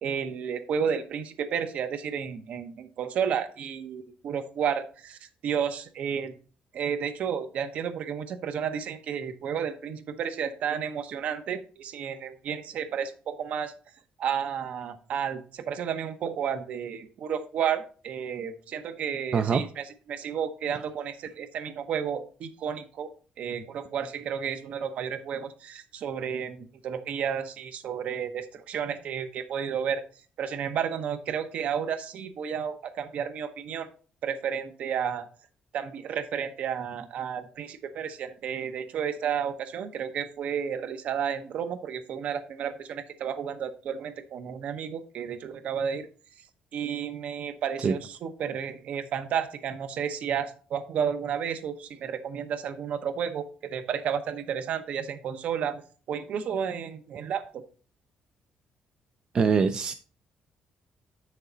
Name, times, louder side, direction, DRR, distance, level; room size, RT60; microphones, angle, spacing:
voice 1, 0.0-6.3 6.7-13.7 14.2-23.1 23.4-30.0 30.4-33.9 34.2-35.3 35.7-46.1 46.7-55.8 56.1-57.6, right 7 dB, 60° right, 9 dB, 0.9 m, -32 dB
voice 2, 19.3-19.6 47.8-47.9 59.3-59.9, right 5 dB, 35° right, 9 dB, 0.4 m, -23 dB
8.3 x 6.6 x 3.9 m, 0.39 s
cardioid pair, 170°, 3 cm